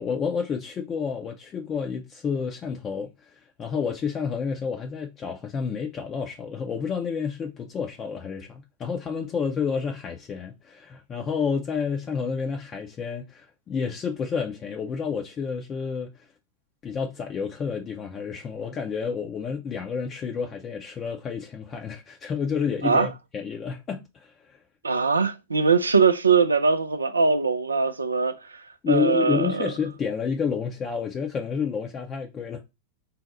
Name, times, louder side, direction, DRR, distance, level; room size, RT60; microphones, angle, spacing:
voice 1, 0.0-3.1 3.6-16.1 16.8-24.6 28.8-32.6, left 6 dB, 25° left, 0.5 m, -30 dB
voice 2, 24.8-28.6 28.9-29.7, right 5 dB, 75° right, 0.3 m, -22 dB
4.1 x 2.0 x 4.1 m
figure-of-eight pair, 90°, 0 cm